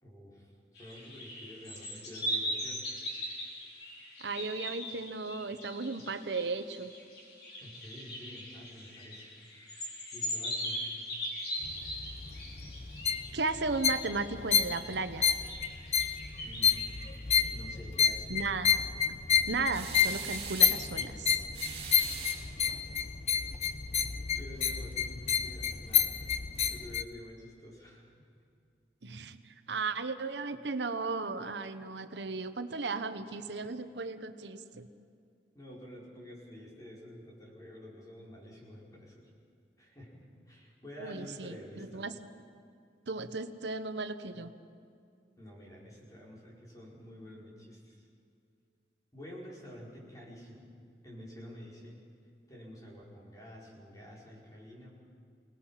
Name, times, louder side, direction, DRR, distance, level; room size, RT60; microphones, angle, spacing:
voice 1, 0.0-2.9 7.6-9.3 10.1-10.8 16.4-16.9 17.5-18.3 23.3-23.4 24.4-26.1 26.7-28.3 33.6-33.7 35.5-39.3 39.8-42.0 45.4-48.1 49.1-50.7 51.0-52.0 52.5-54.9, equal, 20° left, -4 dB, 5.1 m, -49 dB
sound 1, 0.8-17.5, equal, 65° left, 4.7 m, -40 dB
voice 2, 4.2-6.9 13.3-15.3 18.3-18.7 19.5-21.4 29.0-34.9 41.0-42.1 43.1-44.5, right 3 dB, 85° right, 10 dB, 1.0 m, -35 dB
sound 2, 11.6-27.0, left 7 dB, 40° left, 0.7 m, -30 dB
sound 3, 19.7-20.8 21.5-22.8, right 6 dB, 35° right, 4.7 m, -41 dB
28.0 x 19.0 x 5.8 m, 2.3 s
head